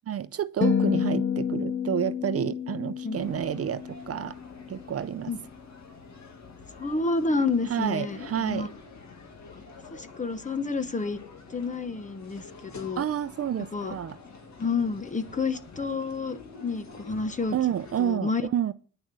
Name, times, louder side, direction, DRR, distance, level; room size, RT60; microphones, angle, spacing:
voice 1, 0.1-4.4 4.7-5.3 7.7-8.7 13.0-14.2 17.5-18.7, right 10 dB, 50° right, 0.5 m, -29 dB
sound 1, 0.6-4.9, left 8 dB, 40° left, 0.6 m, -30 dB
sound 2, 3.1-18.2, left 4 dB, 65° left, 2.0 m, -47 dB
voice 2, 6.8-8.7 9.9-11.2 11.5-13.1 13.7-14.0 14.6-17.6 18.0-18.4, left 4 dB, 25° left, 1.0 m, -29 dB
9.9 x 6.4 x 7.5 m
wide cardioid pair, 125°, 30 cm